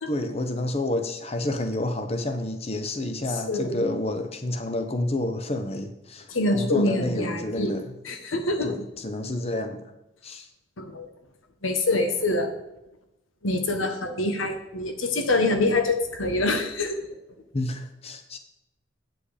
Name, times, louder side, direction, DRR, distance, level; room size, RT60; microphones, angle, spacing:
voice 1, 0.1-6.3 6.5-8.0 8.3-9.9 10.2-10.5 17.5-18.4, left 1 dB, 30° left, 8 dB, 0.9 m, -29 dB
voice 2, 3.5-3.8 6.3-7.7 8.1-8.7 10.8-11.1 11.6-12.5 13.4-17.0, left 2 dB, 90° left, 6 dB, 1.3 m, -25 dB
8.5 x 7.9 x 5.0 m, 0.92 s
head